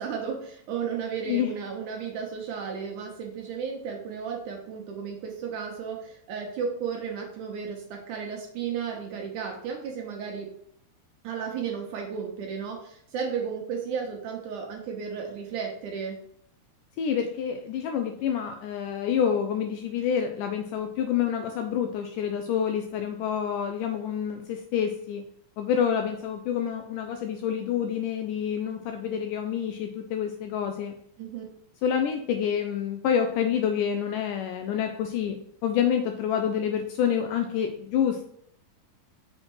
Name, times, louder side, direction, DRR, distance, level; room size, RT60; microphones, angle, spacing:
voice 1, 0.0-10.5 11.2-16.2 31.2-31.4, right 6 dB, 70° right, 1 dB, 2.1 m, -34 dB
voice 2, 17.0-25.3 25.6-30.9 31.8-38.3, left 8 dB, 80° left, 5 dB, 1.9 m, -28 dB
6.2 x 4.3 x 4.6 m, 0.67 s
omnidirectional pair, 4.2 m